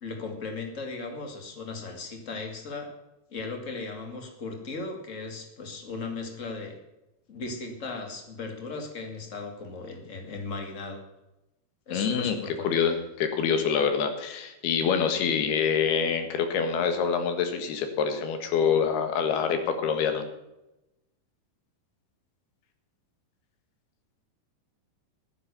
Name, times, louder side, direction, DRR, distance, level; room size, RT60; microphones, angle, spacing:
voice 1, 0.0-2.9 3.3-6.8 7.3-11.0 11.9-12.7, left 3 dB, 25° left, 4 dB, 1.7 m, -37 dB
voice 2, 11.9-12.4 12.6-20.2, left 6 dB, 90° left, 7 dB, 3.6 m, -26 dB
11.5 x 10.0 x 7.0 m, 0.93 s
omnidirectional pair, 4.4 m